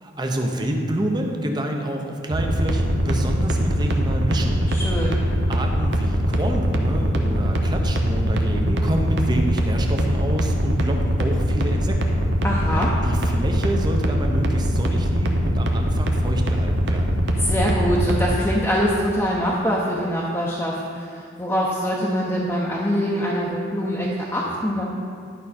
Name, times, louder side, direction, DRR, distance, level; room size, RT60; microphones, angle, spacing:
voice 1, 0.0-5.2 5.5-12.4 13.0-17.2, right 1 dB, 25° right, 3 dB, 0.7 m, -28 dB
sound 1, 2.3-18.3, equal, 65° right, 0.8 m, -21 dB
voice 2, 4.7-5.2 12.4-12.9 17.4-24.8, equal, 10° left, -5 dB, 0.7 m, -24 dB
11.0 x 5.5 x 4.2 m, 2.2 s
head